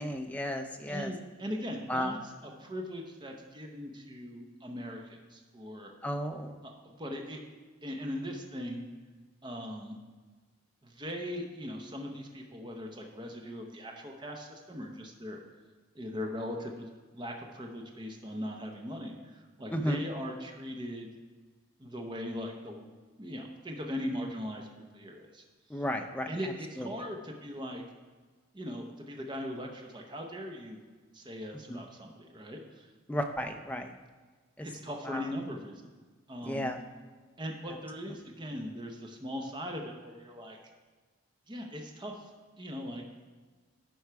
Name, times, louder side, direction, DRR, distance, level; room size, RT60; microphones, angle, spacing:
voice 1, 0.0-1.1 1.9-2.1 6.0-6.6 19.7-20.0 25.7-26.3 26.8-26.9 31.7-31.8 33.1-33.9 34.6-34.7 35.1-35.2 36.4-36.8, equal, 5° left, 5 dB, 0.4 m, -33 dB
voice 2, 0.9-5.9 6.6-7.4 7.8-8.8 9.4-9.9 10.8-15.4 15.9-21.1 21.8-22.8 23.2-25.4 25.7-25.8 26.3-27.8 28.5-30.8 31.1-32.9 34.6-35.9 36.3-36.6 37.4-40.6 41.5-42.3 42.6-43.0, equal, 20° right, 2 dB, 0.8 m, -40 dB
11.5 x 4.7 x 4.6 m, 1.4 s
head